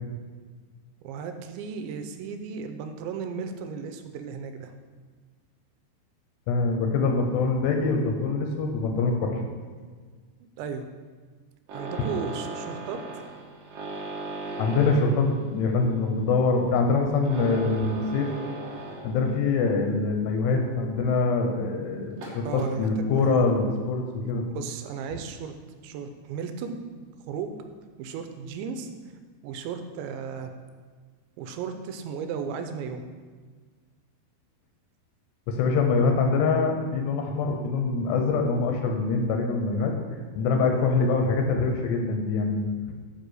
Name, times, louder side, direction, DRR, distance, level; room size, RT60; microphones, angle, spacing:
voice 1, 1.0-4.7 10.4-10.8 11.7-13.0 22.4-23.5 24.5-25.5 25.8-26.8 27.3-27.6 28.0-28.9 29.4-30.5 31.4-33.0 40.6-40.9, right 6 dB, 85° right, 8 dB, 2.9 m, -35 dB
voice 2, 6.5-9.4 14.6-18.3 19.0-24.4 35.5-39.9 40.4-42.7, left 4 dB, 75° left, 3 dB, 2.9 m, -24 dB
sound 1, 11.7-19.5 19.8-20.1 20.6-20.7 21.0-21.1 22.1-22.7 24.0-24.1 24.6-25.0 25.7-25.8 26.1-26.2 26.4-26.5, right 2 dB, 55° right, 2.8 m, -38 dB
8.1 x 6.1 x 6.5 m, 1.5 s
omnidirectional pair, 5.2 m